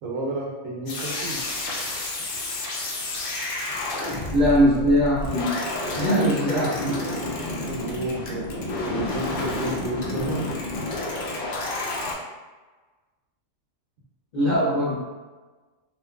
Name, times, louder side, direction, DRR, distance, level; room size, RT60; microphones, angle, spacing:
voice 1, 0.0-1.4 4.8-5.0 7.1-10.5, right 1 dB, 75° right, -2 dB, 0.9 m, -32 dB
sound 1, 0.9-12.1, left 2 dB, 75° left, 0.5 m, -30 dB
voice 2, 4.3-5.6 5.9-7.2 14.3-14.9, equal, 45° left, -9 dB, 0.7 m, -21 dB
2.7 x 2.5 x 2.3 m, 1.3 s
omnidirectional pair, 1.5 m